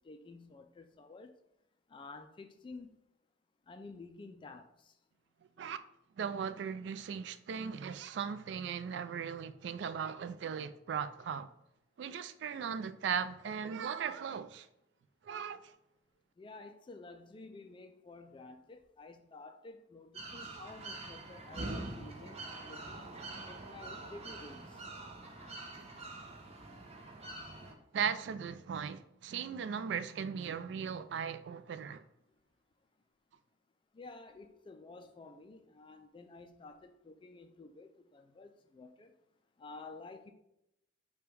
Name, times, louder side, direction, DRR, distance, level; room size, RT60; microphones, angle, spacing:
voice 1, 0.0-1.3 1.9-3.0 3.7-4.9 16.4-23.2 23.5-24.8 33.9-39.1 39.6-40.3, left 3 dB, 25° left, 0.3 m, -51 dB
voice 2, 6.2-11.5 12.0-14.7 15.2-15.7 27.9-32.0, right 7 dB, 65° right, 0.3 m, -38 dB
sound 1, 20.1-27.7, right 2 dB, 35° right, 0.7 m, -45 dB
5.1 x 2.3 x 4.5 m
head